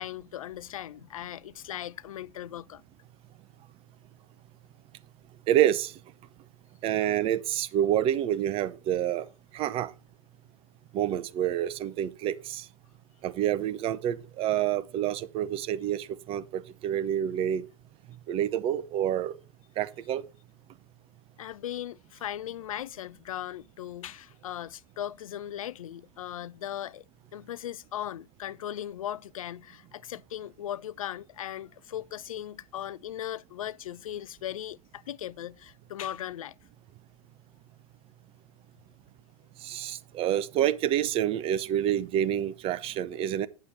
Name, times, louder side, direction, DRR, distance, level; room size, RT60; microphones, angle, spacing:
voice 1, 0.0-2.8 21.4-27.0 27.3-36.5, left 11 dB, 75° left, 0.4 m, -38 dB
voice 2, 5.5-5.9 6.8-9.3 9.5-9.9 10.9-12.6 13.2-17.6 18.3-19.3 19.8-20.2 39.6-43.5, right 11 dB, 30° right, 0.7 m, -28 dB
8.5 x 6.7 x 4.0 m
hypercardioid pair, 105°, 18 cm